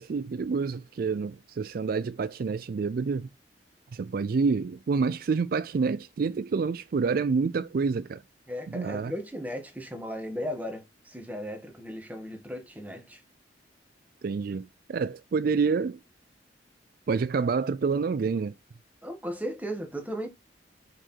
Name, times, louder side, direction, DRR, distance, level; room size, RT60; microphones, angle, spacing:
voice 1, 0.0-3.3 3.9-8.2 8.7-9.1 14.2-16.0 17.1-18.5, right 5 dB, 55° right, 0.4 m, -28 dB
voice 2, 8.5-13.2 19.0-20.3, equal, 10° right, 2.0 m, -36 dB
6.1 x 5.0 x 4.5 m
head